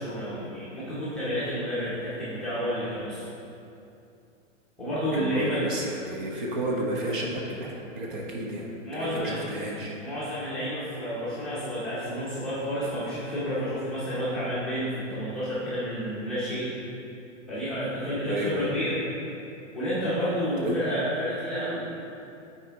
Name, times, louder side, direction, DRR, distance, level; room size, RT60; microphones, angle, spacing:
voice 1, 0.0-3.3 4.8-5.6 8.9-9.4 10.0-16.7 17.5-19.0 19.7-21.8, equal, ahead, -13 dB, 0.8 m, -30 dB
voice 2, 5.1-7.7 7.9-9.9 18.2-18.7 20.6-20.8, right 1 dB, 40° right, -2 dB, 1.0 m, -31 dB
8.5 x 4.4 x 3.5 m, 2.6 s
hypercardioid pair, 165°, 39 cm